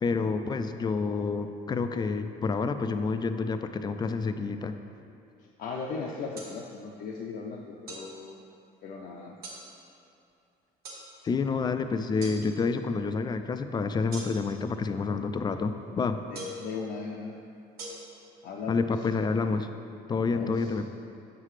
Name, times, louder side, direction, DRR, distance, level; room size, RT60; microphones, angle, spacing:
voice 1, 0.0-4.7 11.2-16.2 18.7-19.7 20.1-20.9, left 4 dB, 25° left, 9 dB, 0.3 m, -28 dB
voice 2, 5.6-8.4 8.8-9.4 16.3-17.3 18.4-18.9 20.3-20.7, left 4 dB, 65° left, -2 dB, 0.6 m, -37 dB
sound 1, 6.4-6.5 7.9-8.1 9.4-9.6 10.8-11.0 12.2-12.4 14.1-14.6 16.3-16.7 17.8-17.9, right 1 dB, 65° right, 1.3 m, -40 dB
7.4 x 5.7 x 3.2 m, 2.6 s
cardioid pair, 110°, 17 cm